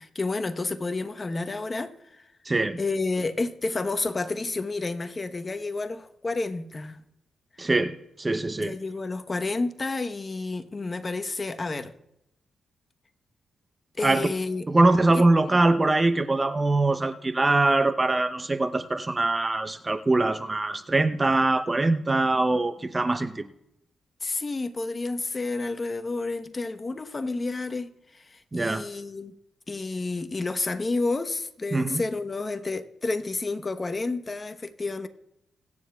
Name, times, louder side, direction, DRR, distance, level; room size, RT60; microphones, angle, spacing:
voice 1, 0.0-2.2 2.8-7.0 8.6-11.9 14.0-14.7 15.1-15.2 24.2-29.3 29.7-35.1, left 3 dB, 35° left, 1.0 m, -30 dB
voice 2, 2.5-2.8 7.6-8.8 14.0-14.3 14.7-23.5 28.5-28.8 31.7-32.0, right 2 dB, 25° right, 0.7 m, -23 dB
26.0 x 9.5 x 2.3 m
cardioid pair, 65°, 0 cm